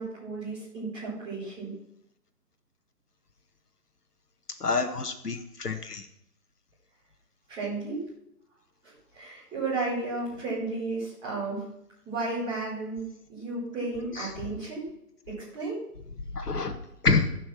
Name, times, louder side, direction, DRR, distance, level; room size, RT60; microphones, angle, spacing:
voice 1, 0.0-1.8 7.5-8.0 9.1-11.7 12.0-13.0 13.3-14.9 15.3-15.8, right 3 dB, 10° right, -8 dB, 4.6 m, -33 dB
voice 2, 4.6-6.1 14.2-14.3 16.3-16.7 17.0-17.3, left 4 dB, 70° left, 6 dB, 1.8 m, -27 dB
16.0 x 6.1 x 6.0 m, 0.80 s
figure-of-eight pair, 150°, 47 cm